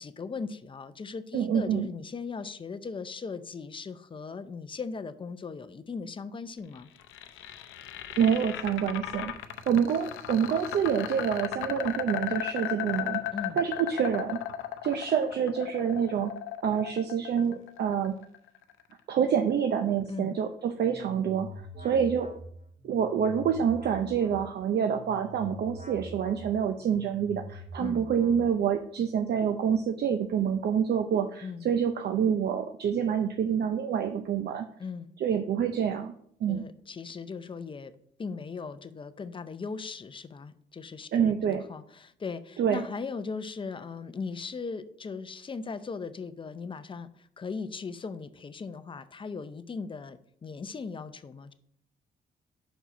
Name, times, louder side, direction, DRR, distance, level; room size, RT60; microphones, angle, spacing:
voice 1, 0.0-6.9 13.3-13.6 20.1-20.4 27.8-28.1 31.4-31.6 34.8-35.1 36.5-37.9 38.2-51.5, left 4 dB, 25° left, 12 dB, 0.5 m, -38 dB
voice 2, 1.3-1.9 8.2-9.4 9.7-13.2 13.6-14.4 14.8-16.3 16.6-18.1 19.1-22.3 22.8-34.6 35.2-36.1 36.4-36.6 41.1-41.6 42.6-42.9, right 8 dB, 55° right, 7 dB, 0.5 m, -27 dB
sound 1, 6.7-18.8, left 12 dB, 85° left, 0.6 m, -36 dB
sound 2, 20.8-28.8, equal, 40° right, 2.6 m, -45 dB
5.6 x 4.6 x 5.0 m, 0.67 s
cardioid pair, 90°, 20 cm